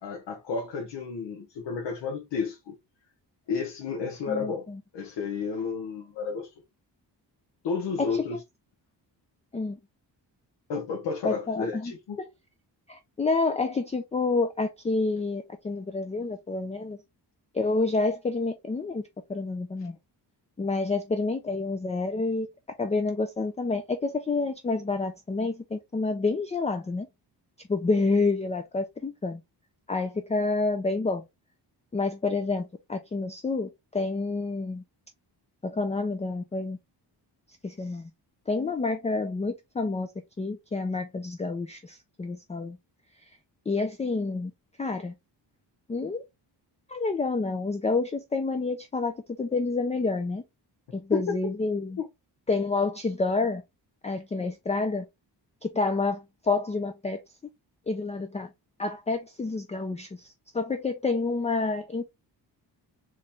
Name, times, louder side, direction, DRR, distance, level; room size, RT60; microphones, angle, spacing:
voice 1, 0.0-2.7 3.5-4.6 4.9-6.5 7.6-8.4 10.7-12.2 51.1-51.2 52.0-52.1, left 5 dB, 80° left, 1.1 m, -31 dB
voice 2, 4.3-4.8 8.0-8.4 9.5-9.8 11.2-11.9 12.2-12.3 12.9-17.0 17.5-19.0 19.3-20.0 20.6-22.5 22.8-27.1 27.7-29.4 29.9-31.2 31.9-34.8 35.6-36.8 37.6-38.1 38.5-40.1 40.4-42.8 43.7-44.5 44.8-45.1 45.9-46.2 46.9-50.4 50.9-52.0 52.5-53.6 54.0-55.1 55.6-57.2 57.9-58.5 58.8-62.0, left 3 dB, 15° left, 0.4 m, -28 dB
4.2 x 3.2 x 3.3 m
wide cardioid pair, 145°, 42 cm